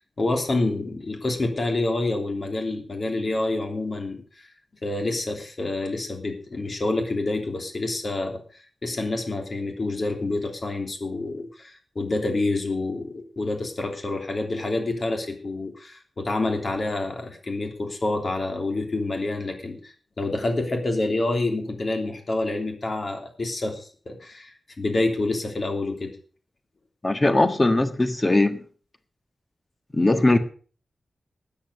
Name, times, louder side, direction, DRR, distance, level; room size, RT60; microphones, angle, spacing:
voice 1, 0.0-4.2 4.8-8.4 8.8-26.1, left 2 dB, 40° left, 4 dB, 3.1 m, -27 dB
voice 2, 27.0-28.6 29.9-30.4, left 2 dB, 25° left, 8 dB, 1.5 m, -20 dB
13.0 x 9.1 x 6.9 m, 0.41 s
wide cardioid pair, 150°, 0 cm